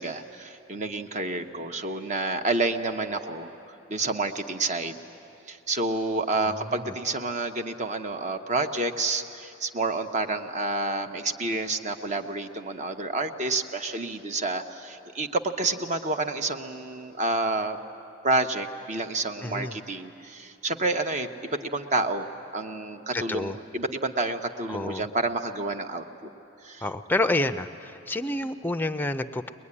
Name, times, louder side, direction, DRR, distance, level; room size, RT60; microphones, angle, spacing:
voice 1, 0.0-5.0 5.5-17.8 18.2-22.3 22.5-26.3 26.6-26.8, right 2 dB, 35° right, 6 dB, 1.0 m, -29 dB
voice 2, 6.5-6.9 19.4-19.8 23.1-23.6 24.7-25.1 26.8-29.5, left 2 dB, 10° left, 10 dB, 0.5 m, -29 dB
23.0 x 21.0 x 9.8 m, 2.8 s
head